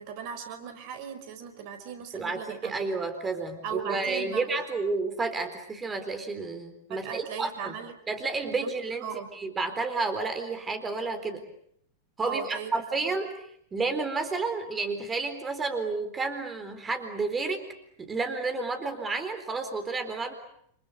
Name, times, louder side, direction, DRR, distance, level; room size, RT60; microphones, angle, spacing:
voice 1, 0.0-2.9 3.6-4.7 6.9-7.9 8.5-8.7 9.0-9.3 12.2-12.7 13.0-13.2, right 8 dB, 45° right, 8 dB, 4.6 m, -38 dB
voice 2, 2.1-7.8 8.1-9.1 9.3-11.4 12.2-17.7 18.0-20.3, right 3 dB, 15° right, 8 dB, 4.1 m, -31 dB
29.0 x 28.5 x 6.7 m, 0.70 s
figure-of-eight pair, 90°, 0 cm